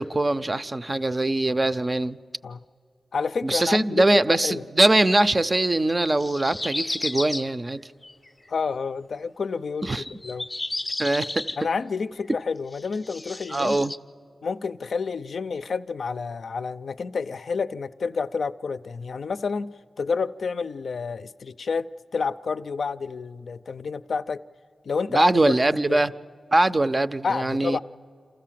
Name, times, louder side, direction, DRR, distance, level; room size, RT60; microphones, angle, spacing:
voice 1, 0.0-2.2 3.4-7.8 9.8-10.0 11.0-11.5 13.5-13.9 25.1-26.1 26.5-27.8, right 2 dB, 30° right, 13 dB, 0.5 m, -22 dB
voice 2, 3.1-4.6 8.5-10.5 11.6-13.8 14.4-24.4 24.8-25.3 25.8-26.0 27.2-27.8, left 5 dB, 80° left, 11 dB, 0.4 m, -29 dB
sound 1, 6.1-7.5 8.0-8.3 10.0-11.6 12.2-12.3 12.7-14.0, left 2 dB, 25° left, 0.5 m, -32 dB
27.5 x 14.5 x 7.5 m, 2.3 s
wide cardioid pair, 105°, 0 cm